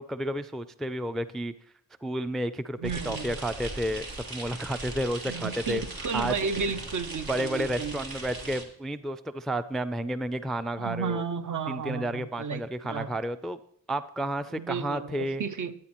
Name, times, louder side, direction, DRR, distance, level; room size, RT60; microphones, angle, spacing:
voice 1, 0.0-1.5 2.0-5.9 6.1-6.3 7.3-11.2 11.7-13.6 13.9-15.4, right 1 dB, ahead, 12 dB, 0.3 m, -31 dB
voice 2, 2.8-3.3 5.3-8.0 10.8-12.6 12.9-13.1 14.5-15.7, right 5 dB, 55° right, 11 dB, 0.6 m, -33 dB
sound 1, 2.8-8.6, right 2 dB, 80° right, 1.6 m, -39 dB
14.0 x 8.6 x 3.0 m, 0.67 s
cardioid pair, 65°, 36 cm